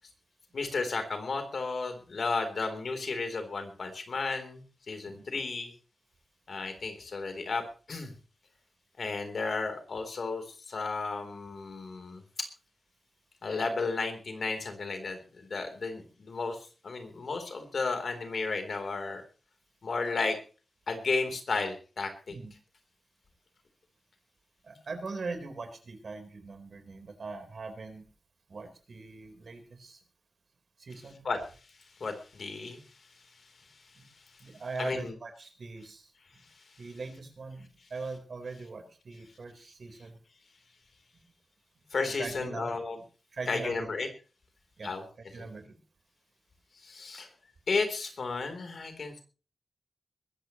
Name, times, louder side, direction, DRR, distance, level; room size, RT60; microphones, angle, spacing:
voice 1, 0.5-5.7 6.5-8.1 9.0-12.2 13.4-19.2 19.8-20.4 20.9-22.3 31.2-31.4 32.0-32.8 34.8-35.1 41.9-43.0 43.5-44.1 44.8-45.0 45.4-45.5 46.8-47.3 47.7-49.2, left 4 dB, 65° left, 6 dB, 3.8 m, -33 dB
voice 2, 24.6-28.0 28.5-30.0 30.8-31.3 33.9-34.1 34.4-36.1 36.8-40.2 41.1-41.2 42.1-42.7 43.3-43.9 44.8-44.9 45.3-45.8, right 3 dB, 60° right, 5 dB, 4.4 m, -41 dB
21.5 x 14.0 x 3.2 m, 0.37 s
wide cardioid pair, 95°, 0 cm